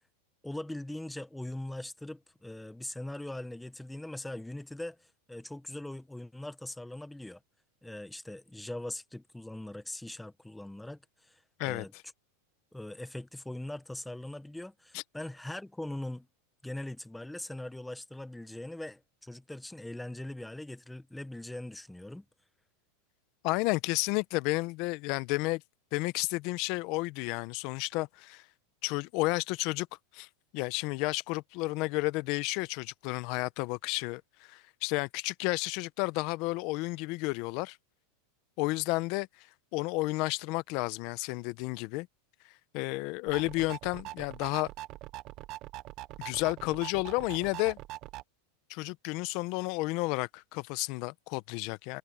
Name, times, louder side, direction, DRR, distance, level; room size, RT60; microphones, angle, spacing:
voice 1, 0.4-7.4 7.8-11.9 12.7-16.3 16.6-22.2, left 1 dB, 5° left, 1.2 m, -41 dB
voice 2, 23.4-25.6 25.9-28.4 28.8-29.9 30.1-30.3 30.5-34.2 34.5-37.8 38.6-39.3 39.7-42.1 42.7-44.7 46.2-47.8 48.7-52.0, left 23 dB, 50° left, 0.9 m, -31 dB
sound 1, 43.3-48.2, right 17 dB, 45° right, 0.9 m, -43 dB
supercardioid pair, 135°, 0 cm